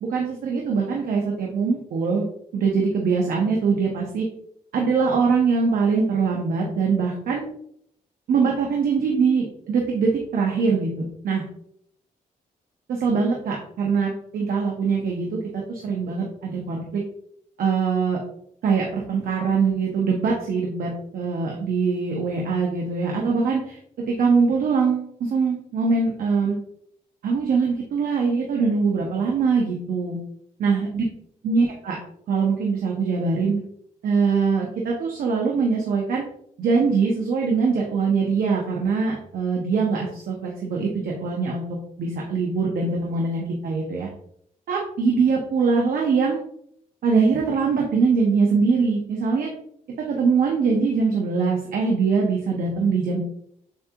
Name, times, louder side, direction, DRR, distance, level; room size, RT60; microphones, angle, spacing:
voice 1, 0.0-2.2 2.5-4.3 4.7-7.4 8.3-11.4 12.9-17.0 17.6-18.2 18.6-23.8 24.1-26.6 27.2-30.2 30.6-31.0 31.4-32.0 32.3-33.6 34.0-36.2 36.6-41.7 42.0-44.1 44.7-46.4 47.0-49.5 50.1-53.2, right 5 dB, 85° right, -1 dB, 0.8 m, -22 dB
7.2 x 2.8 x 2.3 m, 0.69 s
cardioid pair, 95°, 14 cm